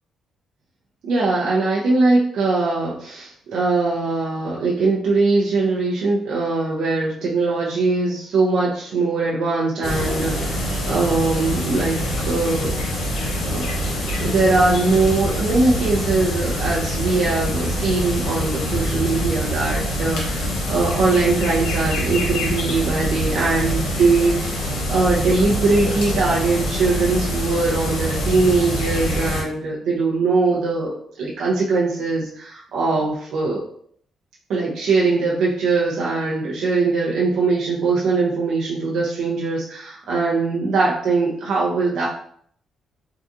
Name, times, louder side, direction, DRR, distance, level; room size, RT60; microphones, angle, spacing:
voice 1, 1.0-12.0 12.3-12.8 13.4-13.7 14.1-33.6 34.5-42.1, right 3 dB, 70° right, -5 dB, 0.6 m, -21 dB
sound 1, 9.8-29.4, equal, 80° left, 0.9 m, -25 dB
3.7 x 2.4 x 2.6 m, 0.62 s
cardioid pair, 90°, 0 cm